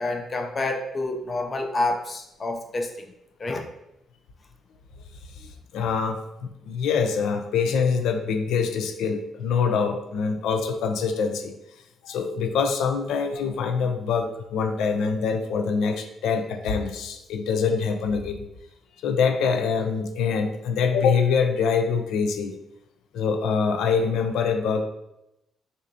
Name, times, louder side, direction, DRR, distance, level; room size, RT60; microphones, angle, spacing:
voice 1, 0.0-2.9 3.4-3.7, left 2 dB, 25° left, 3 dB, 0.5 m, -28 dB
voice 2, 5.7-6.2 6.6-11.5 12.0-18.4 19.0-22.6 23.1-24.8, left 5 dB, 85° left, 6 dB, 0.5 m, -24 dB
6.1 x 2.7 x 2.7 m, 0.85 s
cardioid pair, 140°, 0 cm